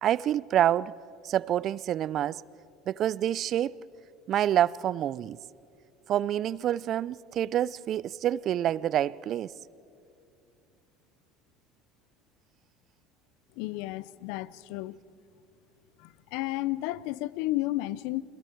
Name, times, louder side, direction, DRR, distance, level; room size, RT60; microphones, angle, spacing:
voice 1, 0.0-0.9 1.2-2.4 2.9-3.8 4.3-5.4 6.1-9.5, right 11 dB, 50° right, 0.5 m, -27 dB
voice 2, 13.6-15.0 16.0-18.2, left 17 dB, 70° left, 0.5 m, -32 dB
30.0 x 22.0 x 4.6 m
hypercardioid pair, 80°, 0 cm